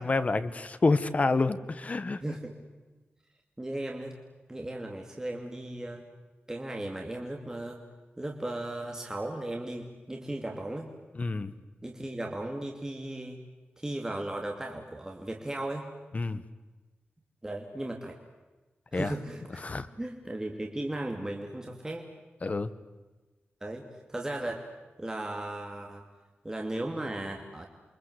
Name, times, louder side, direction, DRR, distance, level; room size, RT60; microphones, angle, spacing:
voice 1, 0.0-2.2 11.1-11.5 16.1-16.4 18.9-19.1 19.6-19.9 22.4-22.7, left 3 dB, 35° left, 13 dB, 1.3 m, -28 dB
voice 2, 2.2-2.7 3.6-4.2 4.5-6.0 6.5-7.8 8.2-10.9 11.8-13.4 13.8-15.9 17.4-18.2 18.9-19.7 20.0-22.1 23.6-24.6 25.0-26.0 26.4-27.7, right 1 dB, 15° right, 1 dB, 2.7 m, -36 dB
29.0 x 24.5 x 8.2 m, 1.2 s
wide cardioid pair, 120°, 4 cm